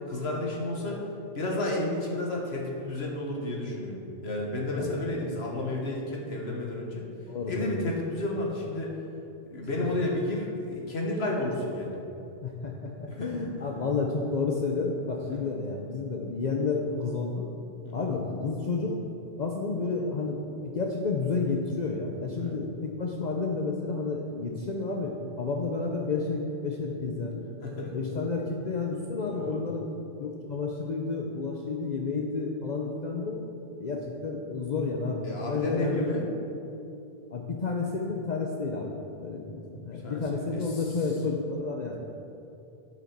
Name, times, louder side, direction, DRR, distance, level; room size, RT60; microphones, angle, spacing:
voice 1, 0.1-1.0 1.3-7.0 7.5-8.9 9.5-12.0 13.1-13.4 15.3-15.5 17.8-18.0 22.3-22.6 27.6-27.9 29.3-29.6 35.2-36.2 39.9-40.6, left 1 dB, 85° left, -1 dB, 1.7 m, -32 dB
voice 2, 7.3-7.8 9.8-10.1 10.7-10.8 12.4-17.4 17.9-19.0 19.4-27.4 27.9-29.9 30.2-33.4 33.8-36.3 37.3-42.0, left 4 dB, 45° left, -1 dB, 0.8 m, -31 dB
9.6 x 5.1 x 5.9 m, 2.8 s
omnidirectional pair, 1.0 m